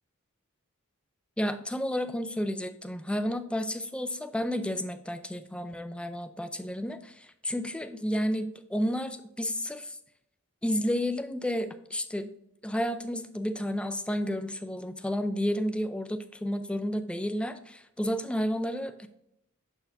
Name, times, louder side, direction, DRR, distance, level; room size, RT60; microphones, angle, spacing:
voice 1, 1.4-10.0 10.6-12.3 12.6-19.1, equal, 5° left, 9 dB, 0.4 m, -31 dB
7.2 x 4.5 x 3.4 m, 0.78 s
head